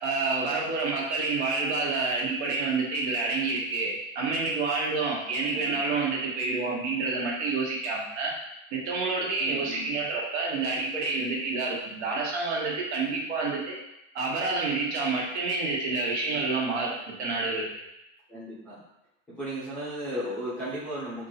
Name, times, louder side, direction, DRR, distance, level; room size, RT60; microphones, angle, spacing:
voice 1, 0.0-8.3 8.7-13.7 14.1-17.7, right 3 dB, 60° right, -2 dB, 1.3 m, -28 dB
voice 2, 5.5-5.9 9.4-9.9 18.3-18.8 19.3-21.3, equal, 5° left, -11 dB, 0.6 m, -36 dB
4.5 x 2.6 x 4.2 m, 0.87 s
supercardioid pair, 180°, 39 cm